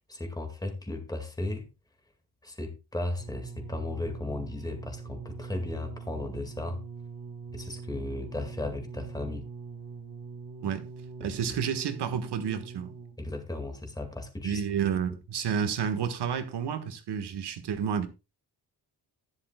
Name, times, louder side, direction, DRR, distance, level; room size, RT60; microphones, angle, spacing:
voice 1, 0.1-1.7 2.4-6.8 7.5-9.5 11.2-11.6 13.2-14.6, left 2 dB, 10° left, 2.0 m, -35 dB
sound 1, 3.2-13.3 14.1-14.2, right 5 dB, 55° right, 2.0 m, -43 dB
voice 2, 11.2-12.9 14.4-18.1, right 7 dB, 85° right, 1.5 m, -30 dB
13.5 x 10.5 x 2.3 m
wide cardioid pair, 120°, 40 cm